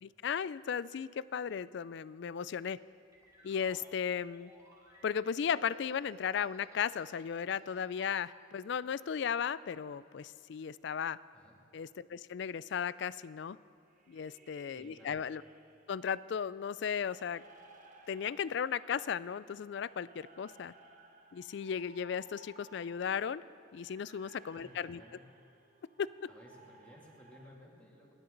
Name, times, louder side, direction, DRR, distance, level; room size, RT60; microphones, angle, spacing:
voice 1, 0.0-2.8 3.4-4.5 5.0-11.2 11.7-13.6 14.1-15.4 15.9-17.4 18.1-20.7 21.3-23.4 23.7-25.0 26.0-26.1, left 7 dB, 55° left, 18 dB, 0.3 m, -36 dB
sound 1, 2.7-7.1 7.5-8.1, left 1 dB, 15° right, 2.2 m, -59 dB
sound 2, 13.9-16.0 16.6-27.5, right 2 dB, 40° right, 1.1 m, -60 dB
voice 2, 14.7-15.2 24.5-25.3 26.3-28.1, equal, 5° left, -4 dB, 2.5 m, -57 dB
29.0 x 10.5 x 3.9 m, 2.4 s
head